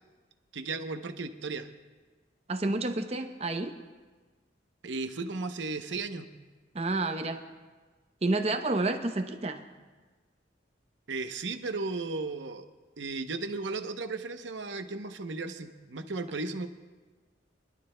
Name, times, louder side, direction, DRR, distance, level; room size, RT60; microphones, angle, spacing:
voice 1, 0.5-1.7 4.8-6.3 11.1-12.7 13.0-16.7, right 3 dB, 85° right, 8 dB, 0.8 m, -35 dB
voice 2, 2.5-3.8 6.7-7.4 8.2-9.6, right 2 dB, 35° right, 6 dB, 0.7 m, -29 dB
26.0 x 12.0 x 2.2 m, 1.3 s
head